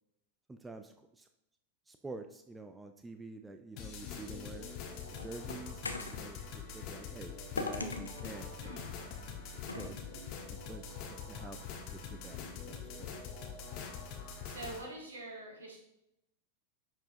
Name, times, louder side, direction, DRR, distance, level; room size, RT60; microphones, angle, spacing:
voice 1, 0.5-1.3 1.9-4.7 5.2-8.7 9.8-10.0 10.7-13.1, right 3 dB, 10° right, 7 dB, 0.4 m, -48 dB
sound 1, 3.8-14.8, left 6 dB, 40° left, 1.3 m, -44 dB
sound 2, 4.3-6.2 7.6-8.5 9.7-9.9, left 3 dB, 80° left, 0.6 m, -40 dB
voice 2, 9.6-9.9 14.1-15.8, right 2 dB, 70° right, -1 dB, 1.7 m, -46 dB
10.5 x 4.5 x 2.7 m, 0.84 s
figure-of-eight pair, 90°, 0 cm